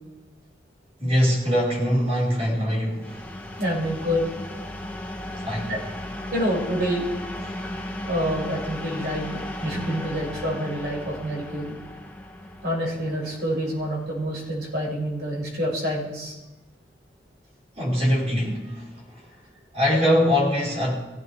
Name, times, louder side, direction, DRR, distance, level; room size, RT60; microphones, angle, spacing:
voice 1, 1.0-3.3 5.4-5.7 7.4-7.6 17.8-19.3 19.7-20.9, equal, 35° right, -5 dB, 5.6 m, -23 dB
sound 1, 3.0-14.6, left 1 dB, 10° left, 1.3 m, -36 dB
voice 2, 3.6-4.2 5.7-5.8 6.3-7.0 8.1-11.7 12.6-16.4, equal, 65° right, -4 dB, 7.0 m, -27 dB
24.0 x 16.0 x 3.7 m, 1.1 s
head